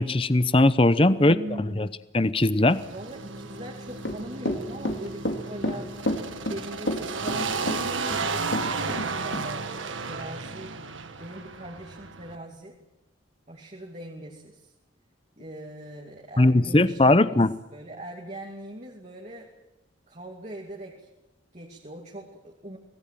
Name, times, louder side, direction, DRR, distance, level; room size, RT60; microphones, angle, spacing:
voice 1, 0.0-1.9 2.1-2.8 16.4-17.5, left 2 dB, 25° left, 14 dB, 0.7 m, -20 dB
voice 2, 1.1-1.9 2.9-6.0 6.4-10.7 11.2-12.8 13.5-14.7 15.4-17.4 17.7-19.5 20.1-21.1 21.5-22.8, right 1 dB, 35° right, -1 dB, 2.5 m, -41 dB
sound 1, 2.7-12.4, right 4 dB, 75° right, 1.7 m, -33 dB
Run / Walk footsteps, 4.0-9.1 9.3-9.5, left 1 dB, 70° left, 2.8 m, -29 dB
26.0 x 19.0 x 7.7 m, 0.97 s
head